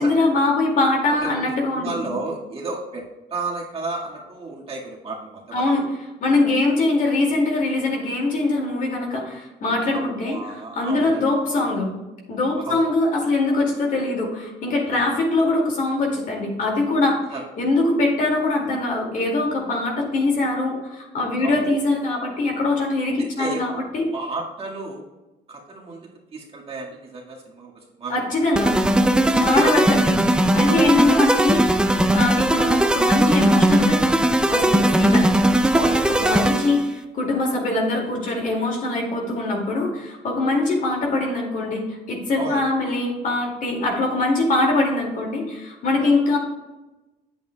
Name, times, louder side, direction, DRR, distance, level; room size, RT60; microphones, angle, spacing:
voice 1, 0.0-2.0 5.5-5.8 6.2-11.9 12.3-17.2 17.6-24.1 28.1-28.7 29.3-31.6 32.1-34.0 34.5-35.3 36.2-46.4, left 2 dB, 50° left, -1 dB, 2.2 m, -22 dB
voice 2, 1.2-3.1 3.3-5.8 9.9-10.0 10.3-11.3 12.6-12.8 14.9-15.0 17.3-17.4 21.4-21.6 23.4-23.6 24.1-25.0 25.5-26.0 26.3-27.7 28.0-28.2 29.5-29.8 30.7-30.8 35.7-36.3 42.4-42.6 46.0-46.1, right 3 dB, 35° right, -3 dB, 1.8 m, -32 dB
sound 1, 28.5-36.9, right 1 dB, 5° right, 0.4 m, -18 dB
9.2 x 7.9 x 2.3 m, 1.1 s
cardioid pair, 110°, 17 cm